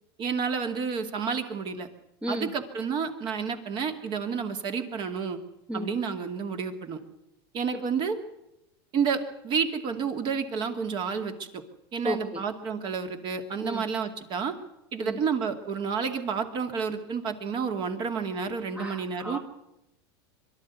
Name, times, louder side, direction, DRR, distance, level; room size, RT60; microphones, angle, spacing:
voice 1, 0.2-1.9 2.3-5.4 5.7-7.0 7.5-8.2 8.9-11.6 11.9-14.5 14.9-19.4, right 6 dB, 35° right, 7 dB, 2.4 m, -30 dB
voice 2, 2.2-2.5 5.7-5.9 7.7-7.8 12.0-12.4 13.6-13.8 15.0-15.2 18.7-19.4, equal, 10° right, 4 dB, 1.3 m, -33 dB
23.0 x 12.5 x 9.5 m, 0.89 s
supercardioid pair, 140°, 14 cm